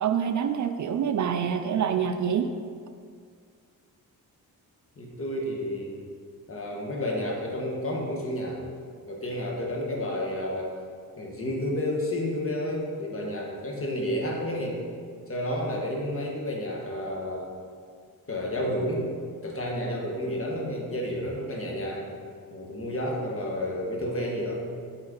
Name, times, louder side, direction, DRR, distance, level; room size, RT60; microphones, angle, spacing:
voice 1, 0.0-2.5, right 8 dB, 55° right, 7 dB, 0.4 m, -26 dB
voice 2, 5.0-6.0 6.5-8.6 9.1-10.7 11.2-14.8 15.3-17.5 18.3-19.1 19.4-22.1 22.5-24.7, left 1 dB, 40° left, -1 dB, 1.4 m, -31 dB
7.8 x 4.4 x 3.9 m, 2.2 s
cardioid pair, 95°, 35 cm